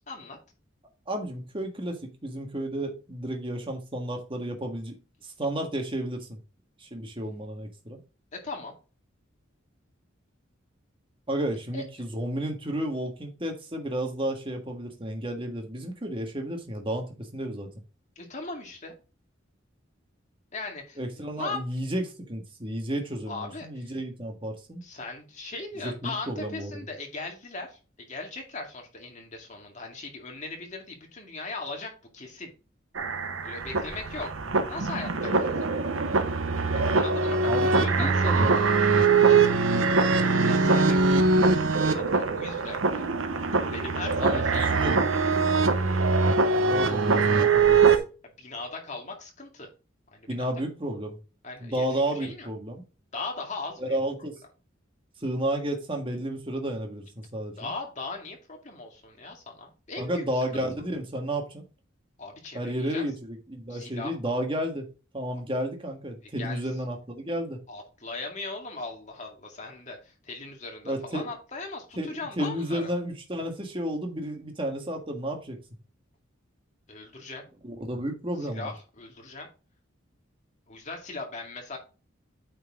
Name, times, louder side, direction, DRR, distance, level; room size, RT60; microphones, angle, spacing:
voice 1, 0.1-0.4 8.3-8.7 11.7-11.8 18.2-18.9 20.5-21.0 21.4-21.6 23.3-23.9 24.8-27.8 28.1-32.5 33.4-34.3 34.7-35.7 36.7-38.6 39.1-41.3 41.8-43.1 43.7-44.8 48.4-49.7 50.1-50.5 51.4-52.5 53.1-54.0 57.6-60.2 60.5-60.6 62.2-63.1 63.7-64.2 66.4-66.7 67.7-72.9 76.9-77.4 78.4-79.5 80.7-81.8, left 3 dB, 35° left, 2.2 m, -39 dB
voice 2, 1.1-4.9 5.2-6.4 6.8-8.0 11.3-17.7 21.0-24.8 25.8-26.8 37.4-38.6 44.2-45.0 46.7-47.9 50.3-51.2 51.6-52.8 53.8-54.3 55.2-57.7 60.0-61.6 62.5-64.9 65.1-67.6 70.8-71.3 72.0-75.6 77.6-78.7, right 1 dB, 25° right, 1.6 m, -32 dB
sound 1, 32.9-48.0, right 4 dB, 85° right, 1.0 m, -23 dB
8.8 x 4.6 x 3.6 m
head